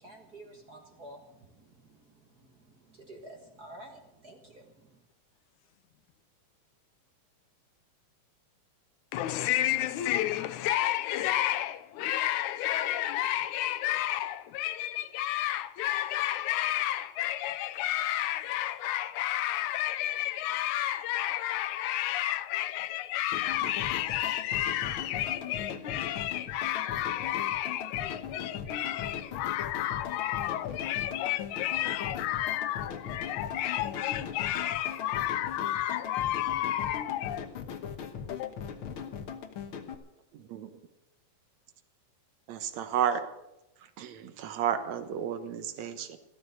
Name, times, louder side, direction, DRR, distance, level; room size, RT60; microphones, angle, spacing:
voice 1, 0.0-5.0, right 1 dB, 40° right, 1.6 m, -51 dB
voice 2, 9.1-37.5 38.3-38.5, left 13 dB, 85° left, 2.2 m, -31 dB
sound 1, 23.3-39.9, left 7 dB, 55° left, 1.7 m, -40 dB
voice 3, 40.3-40.8 42.5-43.3 44.0-46.2, right 9 dB, 70° right, 2.4 m, -32 dB
15.5 x 13.5 x 6.6 m
omnidirectional pair, 3.4 m